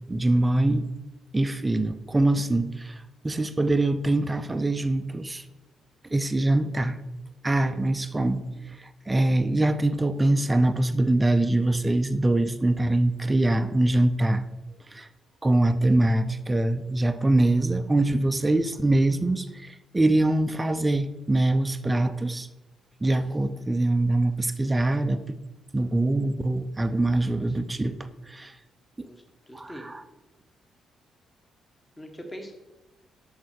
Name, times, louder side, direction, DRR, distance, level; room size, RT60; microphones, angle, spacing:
voice 1, 0.1-0.9 1.3-3.0 3.2-5.4 6.1-7.0 7.4-8.5 8.8-14.4 14.9-15.1 15.4-22.5 23.0-25.4 25.7-28.5 29.0-29.1 29.5-30.0, right 2 dB, 15° right, 0.6 m, -23 dB
voice 2, 29.1-29.9 32.0-32.5, equal, 15° left, 1.4 m, -42 dB
8.3 x 5.5 x 6.4 m
cardioid pair, 90°, 0 cm